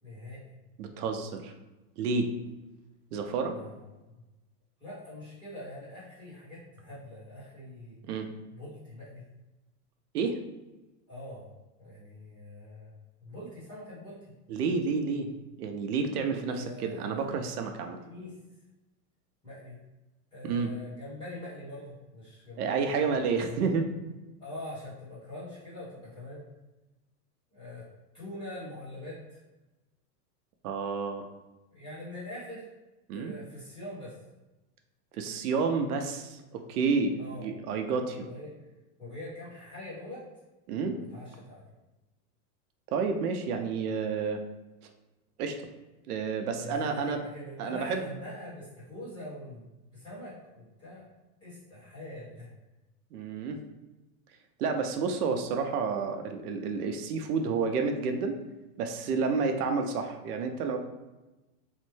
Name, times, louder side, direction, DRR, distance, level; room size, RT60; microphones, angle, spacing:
voice 1, 0.0-0.4 3.5-4.2 4.8-7.9 8.5-9.2 11.1-11.5 11.8-12.9 13.2-14.3 16.5-17.2 18.0-18.3 19.4-19.7 20.3-23.2 24.4-26.5 27.5-27.9 28.1-29.4 31.7-32.7 33.1-34.2 37.2-37.5 38.1-38.5 39.0-40.2 40.9-41.6 46.6-51.0 51.4-52.5, left 1 dB, 10° left, -11 dB, 1.1 m, -43 dB
voice 2, 0.8-1.5 2.0-2.3 3.1-3.6 8.1-8.3 10.1-10.4 14.5-15.3 15.6-18.0 20.4-20.7 22.6-23.9 30.6-31.2 33.1-33.3 35.1-38.3 40.7-41.0 42.9-44.4 45.4-45.6 46.1-47.2 47.6-48.0 53.1-53.6 54.6-58.4 58.8-60.8, right 5 dB, 80° right, 5 dB, 0.6 m, -30 dB
3.1 x 2.1 x 3.1 m, 1.1 s
supercardioid pair, 175°, 45 cm